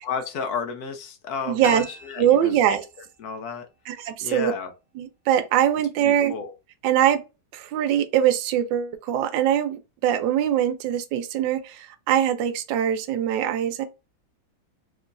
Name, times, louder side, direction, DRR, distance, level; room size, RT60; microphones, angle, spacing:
voice 1, 0.0-2.6 3.2-3.7 4.2-4.7 6.0-6.5, left 5 dB, 70° left, 0.9 m, -32 dB
voice 2, 1.5-1.8 2.2-2.8 3.9-4.5 5.0-6.3 6.8-7.2 7.5-13.8, right 10 dB, 75° right, 1.2 m, -22 dB
sound 1, 1.6-4.4 4.7-4.8, right 1 dB, 10° right, 1.0 m, -43 dB
3.1 x 3.0 x 2.5 m
omnidirectional pair, 2.2 m